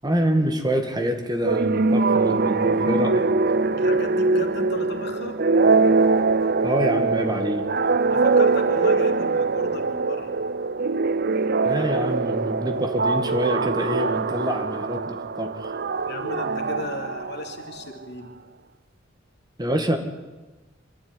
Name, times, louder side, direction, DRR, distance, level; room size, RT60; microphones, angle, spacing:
voice 1, 0.0-3.2 6.6-7.7 11.6-15.8 19.6-20.0, right 1 dB, 20° right, 6 dB, 2.1 m, -26 dB
sound 1, 1.4-17.8, right 3 dB, 55° right, 0.8 m, -22 dB
voice 2, 3.7-5.4 8.1-10.3 16.0-18.3, left 2 dB, 60° left, 4 dB, 2.9 m, -35 dB
26.0 x 13.0 x 9.9 m, 1.2 s
head